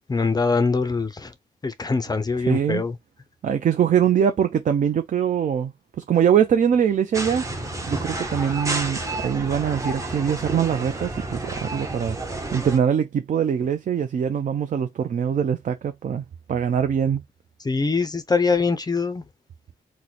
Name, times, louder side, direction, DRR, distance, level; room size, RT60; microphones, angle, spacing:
voice 1, 0.1-1.3 1.6-3.0 17.6-19.2, left 4 dB, 20° left, 0.4 m, -23 dB
voice 2, 2.4-2.8 3.4-7.4 7.9-12.2 12.5-17.2, right 8 dB, 50° right, 0.4 m, -23 dB
sound 1, 7.1-12.8, right 2 dB, 20° right, 0.7 m, -30 dB
3.0 x 2.1 x 3.9 m
cardioid pair, 100°, 18 cm